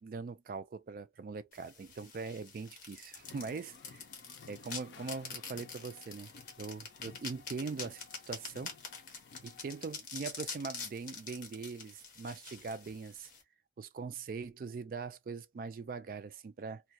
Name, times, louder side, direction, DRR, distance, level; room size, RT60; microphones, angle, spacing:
voice 1, 0.0-4.0 4.5-6.3 6.6-8.7 9.4-13.3 13.8-16.8, right 4 dB, 50° right, 0.3 m, -42 dB
sound 1, 1.5-13.4, left 5 dB, 50° left, 0.9 m, -46 dB
sound 2, 3.2-9.9, left 5 dB, 75° left, 0.4 m, -56 dB
2.2 x 2.2 x 2.6 m
head